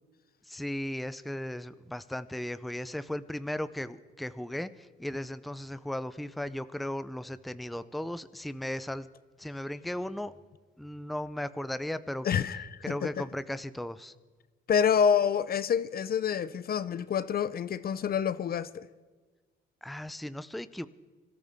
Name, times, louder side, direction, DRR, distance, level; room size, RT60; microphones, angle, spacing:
voice 1, 0.5-9.1 9.4-10.3 10.8-12.3 12.8-14.1 19.8-20.9, left 1 dB, ahead, 0.6 m, -36 dB
voice 2, 12.2-13.3 14.7-18.9, left 7 dB, 50° left, 0.6 m, -27 dB
26.0 x 13.5 x 3.6 m
cardioid pair, 90°, 20 cm